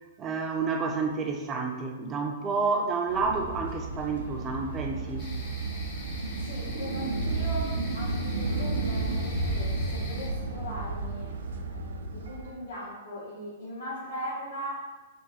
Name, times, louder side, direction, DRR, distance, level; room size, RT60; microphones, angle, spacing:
voice 1, 0.2-5.3, right 4 dB, 20° right, 3 dB, 0.5 m, -29 dB
sound 1, 3.1-12.5, right 3 dB, 85° right, 0.5 m, -32 dB
sound 2, 5.2-10.3, left 2 dB, 35° left, 0.8 m, -44 dB
voice 2, 6.4-14.8, equal, 85° left, -9 dB, 1.4 m, -39 dB
3.5 x 2.5 x 4.1 m, 1.2 s
hypercardioid pair, 145°, 0 cm